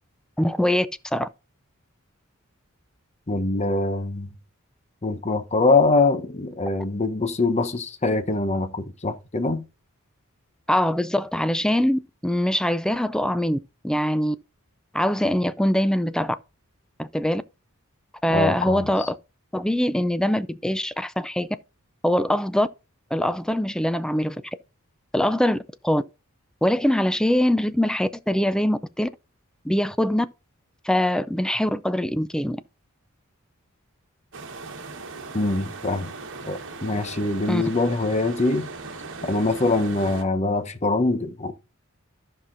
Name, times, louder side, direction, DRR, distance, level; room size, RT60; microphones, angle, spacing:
voice 1, 0.4-1.3 10.7-13.6 13.8-14.4 14.9-16.4 17.0-17.4 18.2-19.2 19.5-21.5 22.0-22.7 23.1-24.4 25.1-25.6 25.8-26.0 26.6-29.1 29.6-30.3 30.8-32.6 37.5-37.6, left 1 dB, 5° left, 0.4 m, -23 dB
voice 2, 3.3-4.3 5.0-9.6 18.3-18.8 35.3-36.1 36.4-38.7 39.3-41.5, left 3 dB, 30° left, 0.8 m, -23 dB
sound 1, 34.3-40.2, right 3 dB, 60° right, 1.3 m, -38 dB
14.5 x 5.6 x 2.6 m
head